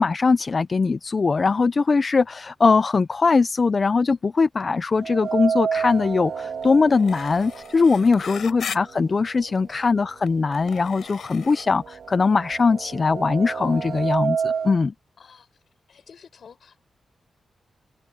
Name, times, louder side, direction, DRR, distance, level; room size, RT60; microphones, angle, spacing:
voice 1, 0.0-11.8 12.1-14.9, left 4 dB, 35° left, 0.4 m, -21 dB
sound 1, 5.0-9.0 9.4-9.5 10.5-10.6 10.9-14.8, right 6 dB, 65° right, 2.0 m, -30 dB
sound 2, 6.6-6.7 6.9-8.8 9.7-9.8 10.3-11.7, left 8 dB, 85° left, 4.1 m, -37 dB
voice 2, 8.2-8.7 9.5-9.7 11.3-11.5 15.2-15.5 15.9-16.8, left 6 dB, 60° left, 5.3 m, -50 dB
wide cardioid pair, 155°, 0 cm